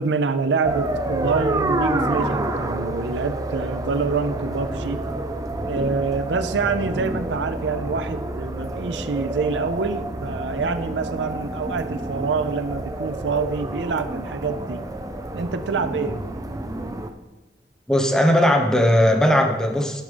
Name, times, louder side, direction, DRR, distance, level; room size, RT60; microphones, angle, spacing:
voice 1, 0.0-5.0 5.6-14.8 15.3-16.2, right 4 dB, 80° right, 10 dB, 0.5 m, -26 dB
sound 1, 0.6-17.1, right 1 dB, 20° right, 0.5 m, -28 dB
voice 2, 17.9-20.0, equal, 5° left, 3 dB, 0.9 m, -18 dB
10.5 x 5.3 x 5.1 m, 1.1 s
head